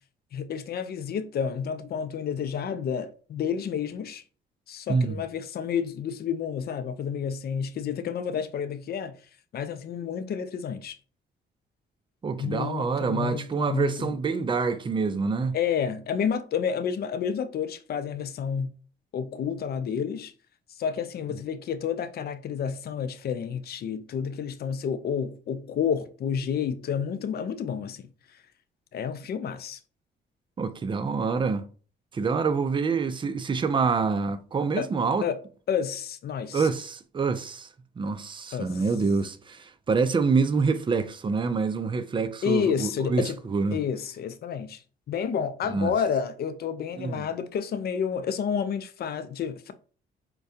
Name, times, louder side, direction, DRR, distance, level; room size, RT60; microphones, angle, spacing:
voice 1, 0.3-4.2 4.7-9.1 9.5-11.0 12.4-14.1 15.5-18.7 19.1-20.3 20.8-28.1 28.9-29.8 34.8-34.9 35.2-35.4 35.7-36.7 38.5-38.8 42.4-43.4 43.7-44.8 45.1-49.7, left 7 dB, 50° left, 0.5 m, -30 dB
voice 2, 4.9-5.2 12.2-15.6 30.6-31.7 32.1-35.3 36.5-37.7 38.0-43.8 45.7-45.9 47.0-47.3, right 4 dB, 25° right, 0.4 m, -26 dB
4.6 x 2.2 x 2.7 m
cardioid pair, 90°, 20 cm